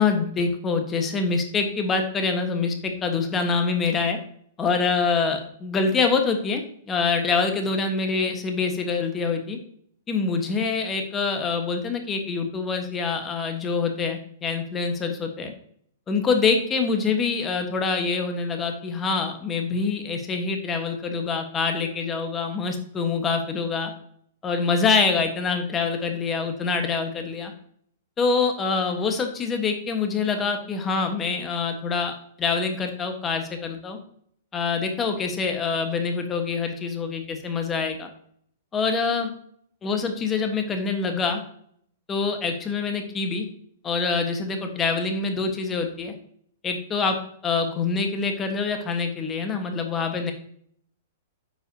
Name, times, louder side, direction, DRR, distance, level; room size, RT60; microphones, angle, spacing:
voice 1, 0.0-4.2 4.6-9.6 10.1-15.5 16.1-23.9 24.4-27.5 28.2-34.0 34.5-38.1 38.7-39.3 39.8-41.4 42.1-43.5 43.8-46.1 46.6-47.2 47.4-50.3, left 4 dB, 20° left, 5 dB, 1.2 m, -25 dB
8.9 x 5.5 x 2.7 m, 0.64 s
hypercardioid pair, 135°, 0 cm